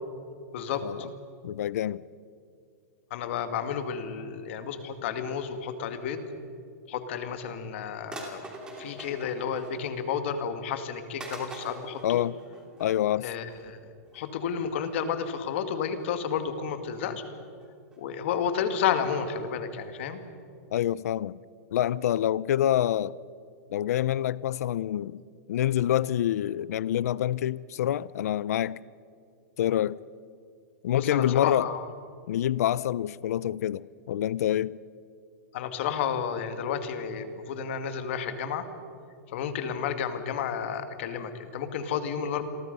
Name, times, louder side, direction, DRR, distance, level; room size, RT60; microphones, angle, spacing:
voice 1, 0.5-1.1 3.1-6.3 6.9-8.4 8.8-12.2 13.2-17.2 18.0-20.2 30.9-31.8 35.5-38.6 39.3-42.5, left 7 dB, 45° left, 2.1 m, -31 dB
voice 2, 1.4-2.0 12.0-12.3 12.8-13.3 20.7-21.3 21.7-23.1 23.7-25.2 25.5-28.8 29.6-30.0 30.8-31.7 32.3-34.8, left 11 dB, 65° left, 0.5 m, -26 dB
sound 1, 8.1-10.1 10.5-10.6 11.2-13.0 13.4-13.7 14.0-14.2 14.8-14.9 15.2-15.3 16.0-16.4 16.8-17.2 17.6-18.0 18.4-18.5 18.7-18.8 19.1-19.2 19.4-19.5 19.8-19.9 20.0-20.1, right 2 dB, 10° right, 2.9 m, -44 dB
29.5 x 22.5 x 5.4 m
supercardioid pair, 175°, 9 cm